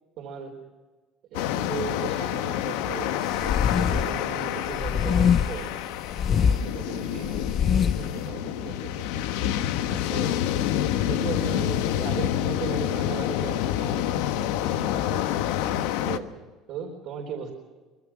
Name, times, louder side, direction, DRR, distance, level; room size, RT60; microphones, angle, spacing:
voice 1, 0.2-0.6 1.3-5.7 6.3-9.3 9.9-10.3 11.1-15.3 16.0-17.5, right 6 dB, 65° right, -1 dB, 4.1 m, -37 dB
sound 1, 1.3-16.2, left 11 dB, 85° left, 1.1 m, -28 dB
sound 2, 3.3-4.1 4.7-5.7 6.1-6.6 7.2-8.1, left 7 dB, 45° left, 1.1 m, -23 dB
25.5 x 20.5 x 6.0 m, 1.3 s
supercardioid pair, 100°, 0 cm